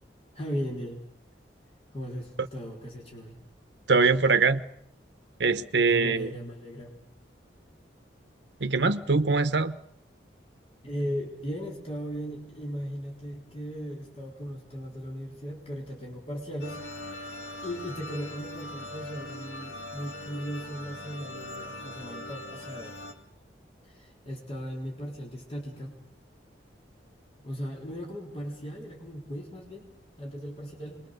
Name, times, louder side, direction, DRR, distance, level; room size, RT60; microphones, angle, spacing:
voice 1, 0.3-1.0 1.9-3.4 5.8-6.9 10.8-17.4 17.6-23.0 23.8-26.0 27.4-29.9 30.2-31.0, equal, 30° left, -1 dB, 3.9 m, -37 dB
voice 2, 3.9-4.6 5.4-6.3 8.6-9.8, right 4 dB, 70° right, 9 dB, 1.0 m, -23 dB
sound 1, 16.6-23.1, left 1 dB, 70° left, 3.2 m, -41 dB
25.0 x 21.5 x 6.6 m, 0.71 s
head